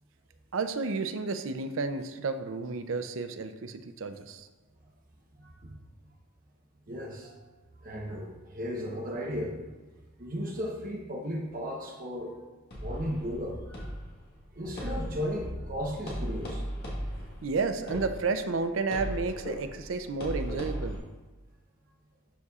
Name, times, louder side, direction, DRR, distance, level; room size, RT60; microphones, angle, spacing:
voice 1, 0.5-4.5 17.4-21.0, right 4 dB, 60° right, 8 dB, 0.5 m, -31 dB
voice 2, 6.9-7.4 7.8-9.5 10.2-12.3 12.7-13.9 14.5-16.6, equal, 40° right, -1 dB, 0.9 m, -35 dB
sound 1, 12.7-21.0, equal, 50° left, 1.5 m, -38 dB
11.5 x 4.1 x 2.4 m, 1.3 s
head